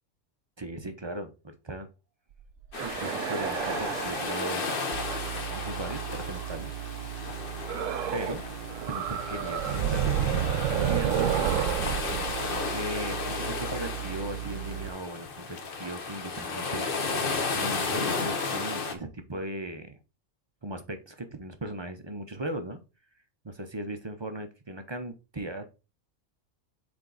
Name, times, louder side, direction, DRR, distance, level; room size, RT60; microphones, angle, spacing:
voice 1, 0.6-1.9 2.8-4.9 5.5-6.7 7.1-7.3 8.1-8.4 8.9-11.8 12.7-16.9 17.5-20.0 20.6-22.8 23.4-25.7, right 1 dB, 30° right, 8 dB, 0.6 m, -37 dB
sound 1, 2.4-6.6 7.7-8.4 8.7-13.6, right 10 dB, 85° right, 1.0 m, -31 dB
sound 2, 2.7-18.9, left 4 dB, 45° left, 1.1 m, -34 dB
sound 3, 4.9-14.9, right 13 dB, 60° right, 0.8 m, -39 dB
8.0 x 3.5 x 3.9 m, 0.30 s
omnidirectional pair, 1.3 m